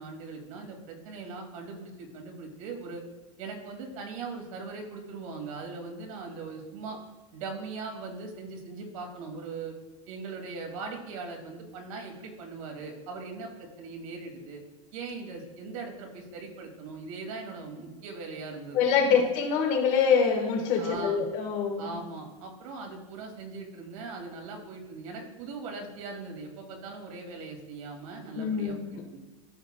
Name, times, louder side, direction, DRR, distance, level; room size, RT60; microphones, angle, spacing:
voice 1, 0.0-3.0 3.4-7.0 7.3-9.8 10.1-14.6 14.9-18.8 19.0-19.2 20.8-21.2 21.8-29.2, right 4 dB, 70° right, 2 dB, 2.2 m, -40 dB
voice 2, 18.7-22.0 28.4-29.0, left 6 dB, 40° left, 4 dB, 1.3 m, -25 dB
13.5 x 5.8 x 2.2 m, 1.2 s
supercardioid pair, 165°, 18 cm